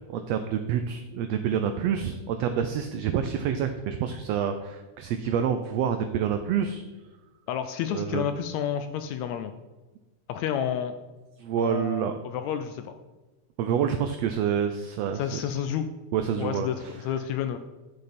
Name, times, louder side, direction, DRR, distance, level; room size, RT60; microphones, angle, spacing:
voice 1, 0.1-6.8 7.9-8.3 11.4-12.1 13.6-15.4 16.1-16.9, right 8 dB, 85° right, 7 dB, 1.4 m, -27 dB
voice 2, 7.5-9.5 10.3-11.0 11.6-12.9 15.1-15.9 16.4-17.6, left 9 dB, 80° left, 9 dB, 1.6 m, -30 dB
9.7 x 6.6 x 4.2 m, 1.2 s
omnidirectional pair, 3.5 m